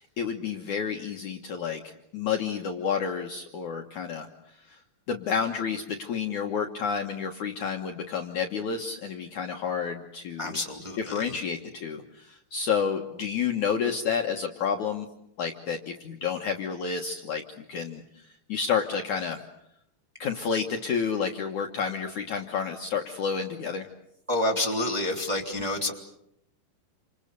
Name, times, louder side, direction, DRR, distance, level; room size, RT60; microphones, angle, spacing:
voice 1, 0.0-4.8 5.1-10.6 11.0-15.1 15.4-19.4 20.2-23.9, left 6 dB, 60° left, 2 dB, 2.3 m, -30 dB
voice 2, 10.4-11.4 24.3-25.9, left 1 dB, 10° right, 0 dB, 2.7 m, -28 dB
29.5 x 27.0 x 6.8 m, 0.78 s
omnidirectional pair, 4.7 m